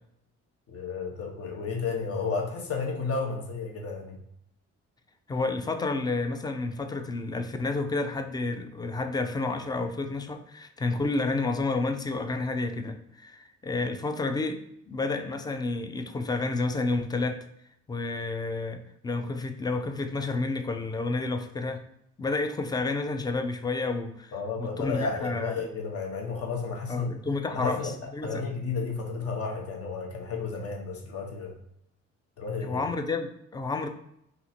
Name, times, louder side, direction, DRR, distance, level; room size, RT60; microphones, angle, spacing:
voice 1, 0.7-4.2 24.3-27.2 27.5-27.9 28.2-31.5 32.4-32.9, left 4 dB, 50° left, 2 dB, 0.9 m, -32 dB
voice 2, 5.3-17.5 17.9-21.8 22.2-24.3 24.6-25.6 26.9-28.4 32.6-33.9, left 3 dB, 15° left, 7 dB, 0.3 m, -30 dB
2.7 x 2.5 x 4.1 m, 0.75 s
cardioid pair, 90°, 30 cm